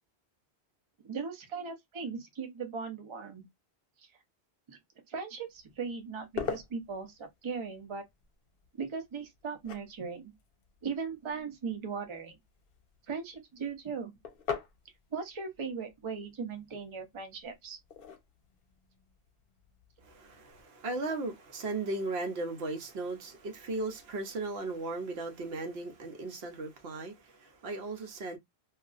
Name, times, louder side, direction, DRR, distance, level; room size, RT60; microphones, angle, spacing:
voice 1, 1.0-3.4 4.0-4.1 4.7-4.8 5.1-8.0 8.8-10.3 10.8-12.4 13.1-14.1 15.1-17.8, right 5 dB, 35° right, 0.6 m, -38 dB
sound 1, 5.5-20.6, left 6 dB, 60° left, 0.8 m, -45 dB
voice 2, 20.0-28.4, right 2 dB, 70° right, 0.9 m, -37 dB
2.8 x 2.3 x 2.4 m
omnidirectional pair, 1.1 m